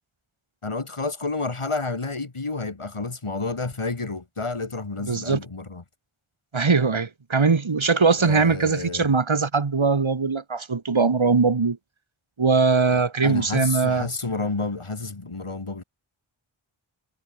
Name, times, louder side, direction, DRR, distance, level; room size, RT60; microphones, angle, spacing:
voice 1, 0.6-5.8 8.2-9.1 12.9-15.8, left 3 dB, 80° left, 5.4 m, -30 dB
voice 2, 5.0-5.4 6.5-11.8 12.4-14.1, right 4 dB, 70° right, 1.9 m, -21 dB
wide cardioid pair, 45°, 50 cm